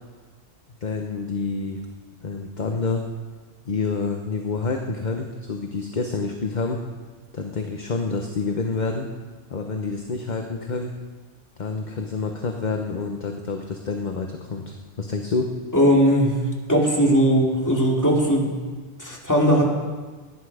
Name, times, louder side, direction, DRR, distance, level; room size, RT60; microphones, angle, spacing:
voice 1, 0.8-1.8 2.2-3.0 3.6-6.8 7.3-9.1 9.5-10.9 11.6-15.5, left 4 dB, 40° left, 3 dB, 1.0 m, -28 dB
voice 2, 15.7-16.4 16.7-18.5 19.0-19.7, equal, 15° left, -3 dB, 2.7 m, -18 dB
18.5 x 10.0 x 4.9 m, 1.4 s
omnidirectional pair, 1.3 m